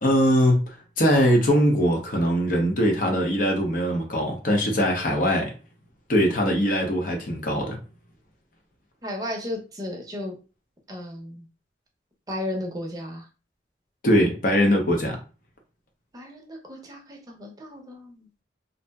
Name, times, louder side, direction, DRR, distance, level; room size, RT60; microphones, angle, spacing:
voice 1, 0.0-5.5 6.1-7.8 14.0-15.2, equal, 50° left, 0.7 m, -21 dB
voice 2, 9.0-10.3 10.9-11.4 12.3-13.3 16.1-18.3, left 1 dB, 20° right, 0.6 m, -34 dB
2.6 x 2.0 x 3.4 m
head